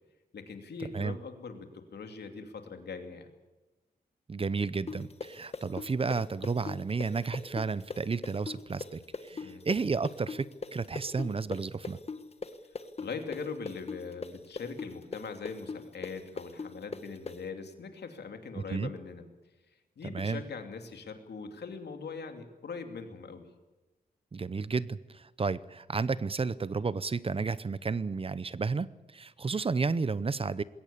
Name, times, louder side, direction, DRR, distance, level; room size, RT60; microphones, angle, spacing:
voice 1, 0.3-1.7 1.9-3.3 9.3-9.6 13.0-19.2 20.0-23.4, left 5 dB, 90° left, 6 dB, 2.8 m, -41 dB
voice 2, 4.3-12.0 18.6-18.9 20.0-20.4 24.3-30.6, right 4 dB, 35° right, 18 dB, 0.7 m, -32 dB
sound 1, 4.9-12.5 12.8-17.4, left 4 dB, 40° left, 1.4 m, -39 dB
21.5 x 17.5 x 8.6 m, 1.1 s
wide cardioid pair, 130°, 17 cm